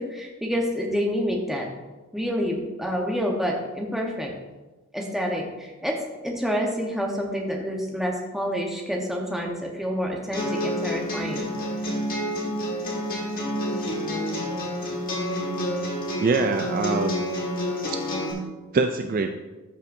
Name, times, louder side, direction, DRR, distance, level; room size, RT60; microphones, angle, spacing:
voice 1, 0.0-1.7 2.1-4.3 4.9-6.0 6.2-11.5, equal, ahead, -1 dB, 1.0 m, -28 dB
sound 1, 10.3-18.3, equal, 40° left, 1.7 m, -28 dB
voice 2, 16.2-17.2 17.9-18.0 18.7-19.3, right 4 dB, 40° right, 6 dB, 0.3 m, -24 dB
13.0 x 5.4 x 2.6 m, 1.2 s
head